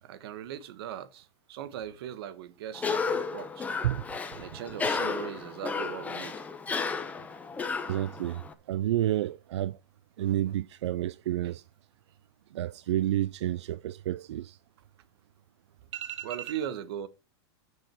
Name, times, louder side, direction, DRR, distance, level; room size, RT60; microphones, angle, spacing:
voice 1, 0.0-3.7 4.4-6.4 10.2-10.4 11.4-11.5 16.2-17.1, right 10 dB, 60° right, 1.3 m, -39 dB
Cough, 2.7-8.5, left 5 dB, 10° left, 1.1 m, -33 dB
voice 2, 7.9-9.8 10.2-11.6 12.5-14.6 15.9-16.5, right 13 dB, 80° right, 0.4 m, -30 dB
13.0 x 6.3 x 4.4 m
supercardioid pair, 150°, 14 cm